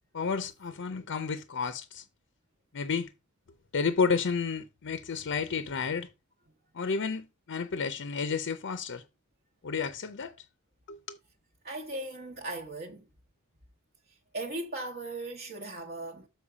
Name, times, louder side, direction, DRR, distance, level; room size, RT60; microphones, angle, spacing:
voice 1, 0.1-2.0 2.7-3.1 3.7-6.1 6.7-9.0 9.6-10.3 10.9-11.2, left 5 dB, 55° left, 0.6 m, -31 dB
voice 2, 11.6-13.1 14.1-16.3, right 2 dB, 45° right, 1.0 m, -38 dB
7.2 x 4.5 x 4.9 m
head